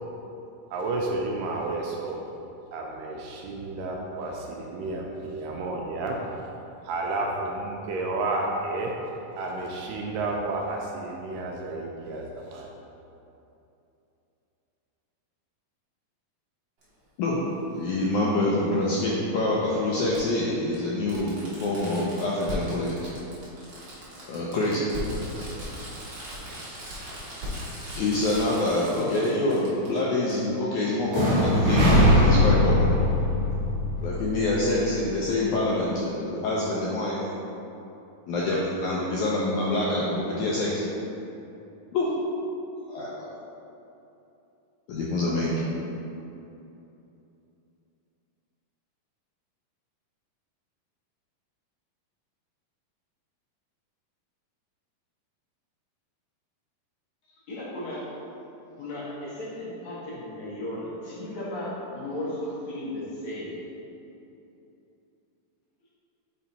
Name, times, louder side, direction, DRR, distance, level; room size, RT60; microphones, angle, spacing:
voice 1, 0.7-2.2 2.7-6.2 6.8-8.9 9.4-12.7, right 2 dB, 80° right, -1 dB, 2.0 m, -31 dB
Fireworks, 16.8-16.9 18.4-18.5 20.1-20.2 20.7-20.8 21.1-30.0 30.3-30.4, equal, 60° right, 1.1 m, -38 dB
voice 2, 17.7-23.0 24.3-24.9 25.3-25.6 27.9-32.9 34.0-37.2 38.3-40.9 41.9-42.1 42.9-43.3 44.9-45.7, left 2 dB, 80° left, -5 dB, 1.8 m, -26 dB
sound 1, 31.1-35.0, left 1 dB, 45° right, 2.0 m, -21 dB
voice 3, 57.5-58.0 58.8-63.6, left 1 dB, 65° left, -8 dB, 2.1 m, -35 dB
5.5 x 4.2 x 4.1 m, 2.9 s
omnidirectional pair, 4.1 m